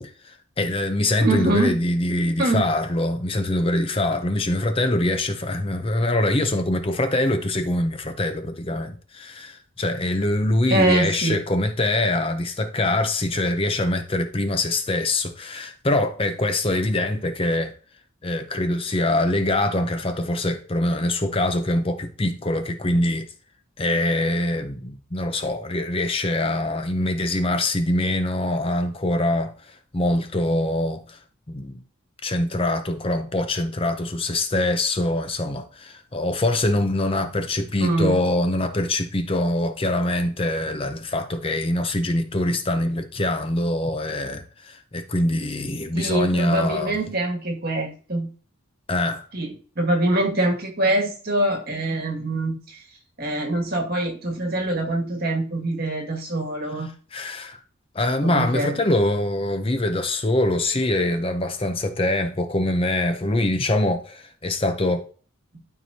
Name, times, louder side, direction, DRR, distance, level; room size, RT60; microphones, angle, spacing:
voice 1, 0.0-17.7 18.2-23.3 23.8-31.2 31.5-31.8 32.2-47.0 48.9-49.3 57.1-57.6 57.9-65.1, left 1 dB, 25° left, 0.6 m, -24 dB
voice 2, 1.2-1.8 2.4-2.7 10.7-11.4 37.8-38.2 45.9-48.3 49.3-52.8 53.2-56.9 58.2-58.7, right 2 dB, 45° right, 2.1 m, -24 dB
12.5 x 4.7 x 2.8 m
head